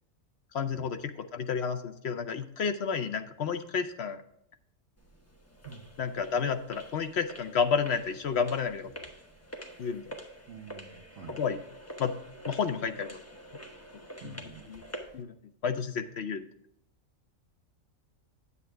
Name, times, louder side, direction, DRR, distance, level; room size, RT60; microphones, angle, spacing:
voice 1, 0.5-4.2 6.0-9.0 9.8-10.1 11.4-11.6 12.0-12.1 12.5-13.2 14.2-14.4 14.7-14.8 15.1-15.3 15.6-16.4, left 6 dB, 60° left, 9 dB, 0.8 m, -31 dB
sound 1, 5.0-15.2, equal, 10° left, 0.9 m, -46 dB
voice 2, 10.5-11.4 14.2-14.7, right 6 dB, 60° right, 1 dB, 1.1 m, -47 dB
8.9 x 8.3 x 3.4 m, 0.72 s
omnidirectional pair, 1.4 m